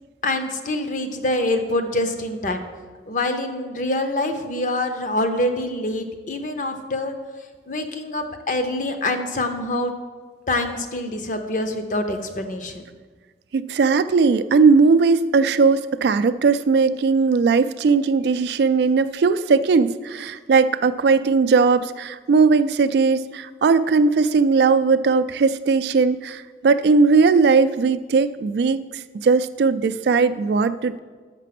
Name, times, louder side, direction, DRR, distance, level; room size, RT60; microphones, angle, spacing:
voice 1, 0.2-2.6 3.1-7.2 7.7-9.9 10.5-12.9, left 1 dB, 45° left, 7 dB, 0.7 m, -25 dB
voice 2, 13.5-31.0, right 4 dB, 65° right, 14 dB, 0.3 m, -18 dB
6.7 x 6.0 x 5.9 m, 1.4 s
head